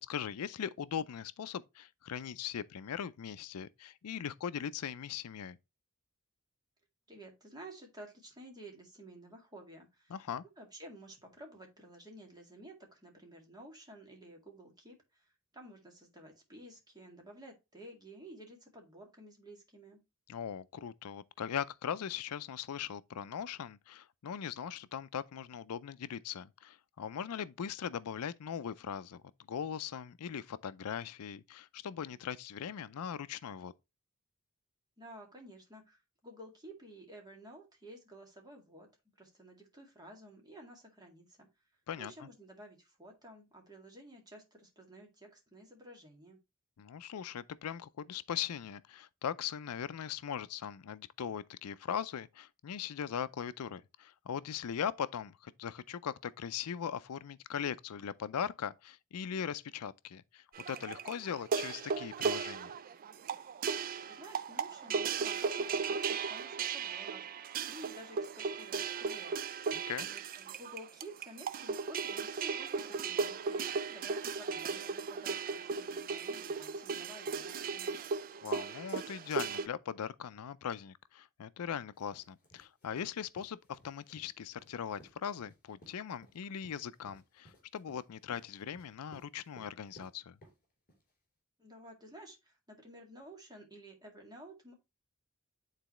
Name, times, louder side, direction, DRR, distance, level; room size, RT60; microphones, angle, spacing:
voice 1, 0.1-5.6 10.1-10.4 20.3-29.2 29.5-33.7 41.9-42.1 46.8-62.7 69.9-70.1 78.4-90.4, left 8 dB, 80° left, 0.4 m, -40 dB
voice 2, 7.1-10.2 10.6-20.0 35.0-38.9 39.2-41.5 42.0-46.4 64.1-77.9 91.6-94.7, right 1 dB, 20° right, 2.0 m, -53 dB
sound 1, 60.5-79.7, right 5 dB, 40° right, 0.4 m, -36 dB
sound 2, 81.9-91.1, equal, 40° left, 3.7 m, -60 dB
9.1 x 4.0 x 3.0 m
head